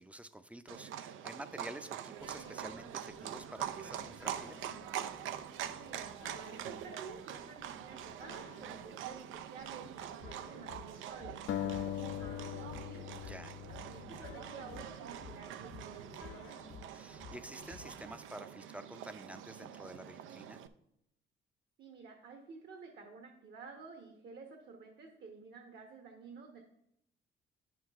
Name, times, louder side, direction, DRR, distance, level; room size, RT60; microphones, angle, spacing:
voice 1, 0.0-4.7 13.2-13.5 16.9-20.6, right 1 dB, 5° right, 12 dB, 0.5 m, -49 dB
Livestock farm animals working animals, 0.7-20.7, right 10 dB, 80° right, 0.5 m, -45 dB
sound 1, 2.2-18.2, left 5 dB, 85° left, 1.1 m, -55 dB
voice 2, 5.7-13.1 13.9-16.6 21.8-26.6, right 4 dB, 60° right, 3 dB, 1.2 m, -52 dB
sound 2, 11.5-14.7, left 11 dB, 65° left, 0.5 m, -40 dB
9.0 x 6.5 x 3.5 m, 0.77 s
cardioid pair, 90°, 20 cm